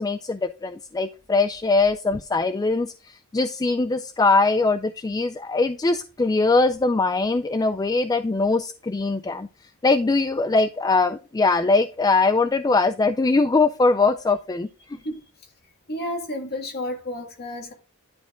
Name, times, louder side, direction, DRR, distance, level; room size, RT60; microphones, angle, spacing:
voice 1, 0.0-9.5 9.8-15.0, left 3 dB, 15° left, 0.3 m, -22 dB
voice 2, 15.9-17.7, left 1 dB, 45° left, 2.1 m, -31 dB
11.0 x 5.0 x 3.7 m
head